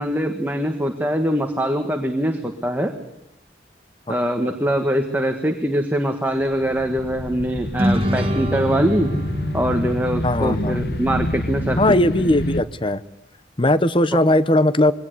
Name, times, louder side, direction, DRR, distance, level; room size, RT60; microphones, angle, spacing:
voice 1, 0.0-2.9 4.1-9.1 9.5-11.8, equal, 10° right, 4 dB, 1.5 m, -23 dB
sound 1, 6.5-12.6, left 1 dB, 55° left, 1.2 m, -28 dB
sound 2, 7.8-11.4, equal, 30° right, 1.5 m, -26 dB
voice 2, 10.2-10.8 11.8-13.0 13.6-14.9, left 1 dB, 25° left, 15 dB, 0.8 m, -18 dB
22.5 x 18.0 x 8.3 m, 0.85 s
head